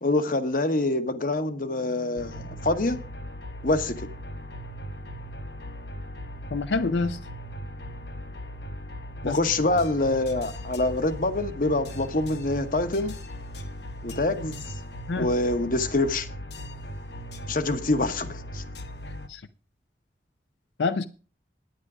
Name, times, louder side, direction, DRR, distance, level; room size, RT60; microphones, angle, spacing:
voice 1, 0.0-3.0 3.6-4.1 9.2-13.1 14.0-14.6 15.2-16.3 17.5-18.6, left 2 dB, 50° left, 1.1 m, -25 dB
sound 1, 2.2-19.3, equal, 70° left, 1.3 m, -38 dB
voice 2, 6.5-7.2 9.2-9.4 15.1-15.3 19.3-19.4 20.8-21.0, left 3 dB, 85° left, 0.5 m, -26 dB
10.5 x 9.8 x 4.9 m
head